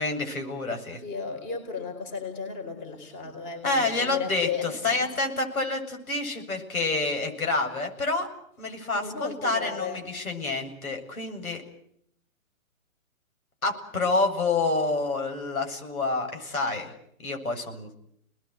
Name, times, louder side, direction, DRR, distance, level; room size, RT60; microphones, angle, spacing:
voice 1, 0.0-1.0 3.6-8.3 8.6-11.6 13.6-16.9 17.2-17.9, left 3 dB, 85° left, 4 dB, 7.8 m, -28 dB
voice 2, 1.0-5.1 8.9-10.1, left 5 dB, 20° left, 6 dB, 4.5 m, -34 dB
29.5 x 20.5 x 8.2 m, 0.71 s
hypercardioid pair, 160°, 42 cm